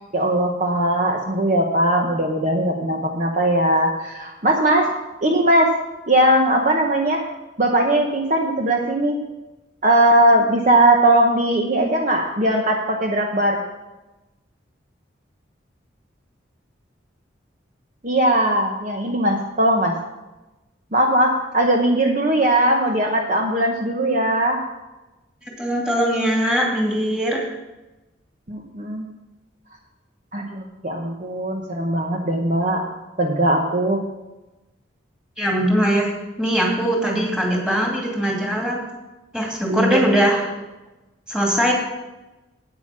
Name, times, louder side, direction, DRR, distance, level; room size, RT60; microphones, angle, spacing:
voice 1, 0.1-4.9 5.2-5.7 6.1-7.3 7.6-9.2 9.8-13.6 18.0-20.0 20.9-24.6 28.5-29.1 30.3-32.8 33.2-34.0 39.7-40.0, right 1 dB, 40° right, 1 dB, 1.0 m, -19 dB
voice 2, 25.6-27.5 35.4-36.1 36.4-38.8 39.3-40.6 41.3-41.7, equal, 5° right, -2 dB, 2.6 m, -21 dB
9.0 x 8.7 x 6.1 m, 1.0 s
head